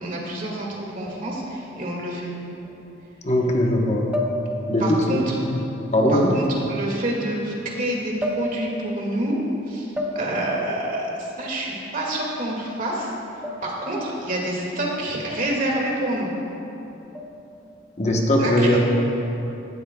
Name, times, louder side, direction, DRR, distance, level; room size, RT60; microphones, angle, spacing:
voice 1, 0.0-2.3 4.8-5.4 6.1-9.4 9.7-9.9 10.1-13.1 13.6-16.3 18.4-18.8, right 1 dB, 45° right, -3 dB, 2.2 m, -27 dB
sound 1, 1.1-1.4 2.6-2.7 4.1-4.9 6.4-6.6 8.2-8.9 10.0-10.6 13.4-13.9 15.3-15.7 17.1-17.6, left 1 dB, 10° right, 1.0 m, -31 dB
voice 2, 3.2-4.1 4.7-5.3 5.9-6.3 18.0-18.8, left 1 dB, 35° left, -1 dB, 1.1 m, -20 dB
18.0 x 12.5 x 2.3 m, 2.9 s
head